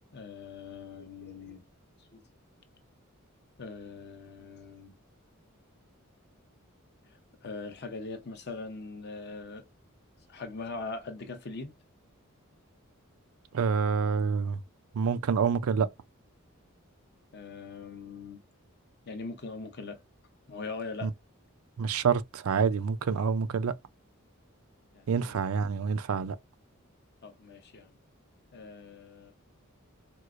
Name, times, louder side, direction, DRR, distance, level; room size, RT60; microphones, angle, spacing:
voice 1, 0.1-1.6 2.0-2.2 3.6-4.9 7.0-9.7 10.3-11.7 17.3-18.4 19.0-20.0 20.5-21.1 24.9-25.7 27.2-28.0 28.5-29.3, left 3 dB, 50° left, 0.7 m, -41 dB
voice 2, 13.5-14.6 14.9-15.9 21.0-21.1 21.8-23.7 25.1-26.4, right 6 dB, 80° right, 0.4 m, -27 dB
4.5 x 2.0 x 2.5 m
head